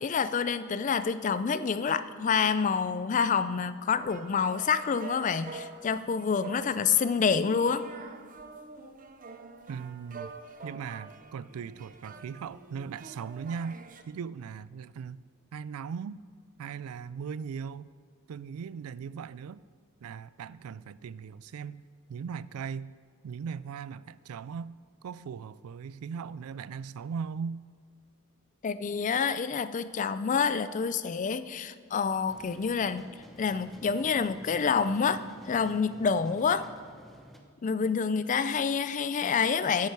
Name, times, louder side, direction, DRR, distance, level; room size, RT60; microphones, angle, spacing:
voice 1, 0.0-7.8 28.6-33.1 33.4-36.7 37.6-39.9, left 6 dB, 35° left, 14 dB, 0.4 m, -27 dB
sound 1, 3.9-14.0, right 4 dB, 40° right, 0.6 m, -47 dB
voice 2, 9.7-10.3 10.6-13.8 14.1-15.2 15.5-16.2 16.6-17.9 18.3-19.6 20.0-21.8 22.1-23.0 23.2-24.7 25.0-27.6, right 6 dB, 85° right, 19 dB, 0.3 m, -38 dB
sound 2, 32.3-37.4, equal, ahead, 0.8 m, -51 dB
10.5 x 8.9 x 4.7 m, 2.1 s
head